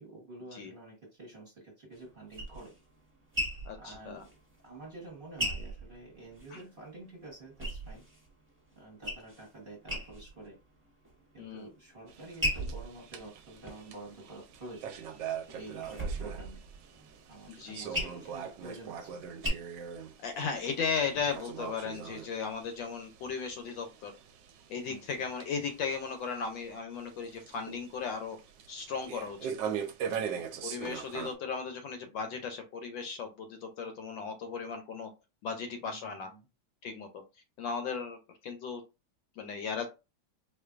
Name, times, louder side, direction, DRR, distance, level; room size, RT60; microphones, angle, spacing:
voice 1, 0.0-2.7 3.7-4.3 4.6-8.0 8.7-10.6 11.3-14.9 15.5-16.6 17.3-19.1 24.8-25.2 30.1-30.6 35.8-36.5, right 2 dB, 30° right, 1.1 m, -49 dB
sound 1, 1.9-6.7 7.0-8.3 8.7-9.5 9.8-10.5 10.9-11.5 12.0-14.7 15.2-19.5, equal, 10° right, 1.0 m, -38 dB
voice 2, 3.7-4.2 6.5-6.6 11.4-11.7 17.5-18.1 20.2-24.1 24.7-28.4 28.7-29.5 30.6-35.1 35.4-36.3 36.8-37.2 37.6-38.8 39.4-39.9, left 5 dB, 70° left, 1.3 m, -36 dB
sound 2, 12.1-31.3, right 8 dB, 75° right, 1.1 m, -42 dB
4.4 x 2.5 x 2.4 m
omnidirectional pair, 2.2 m